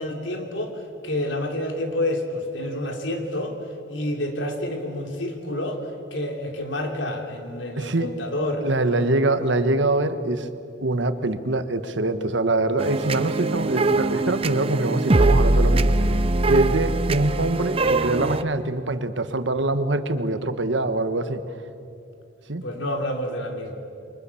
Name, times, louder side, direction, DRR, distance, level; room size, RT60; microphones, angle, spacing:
voice 1, 0.0-3.6 3.9-5.8 6.1-9.2 22.6-23.7, left 1 dB, 80° left, 3 dB, 3.2 m, -29 dB
voice 2, 7.8-8.1 8.6-10.5 10.8-15.9 16.5-21.4 22.5-22.6, right 2 dB, 75° right, 10 dB, 1.4 m, -24 dB
sound 1, 12.8-18.4, right 2 dB, 30° right, 0.6 m, -21 dB
29.0 x 24.0 x 7.2 m, 2.7 s
head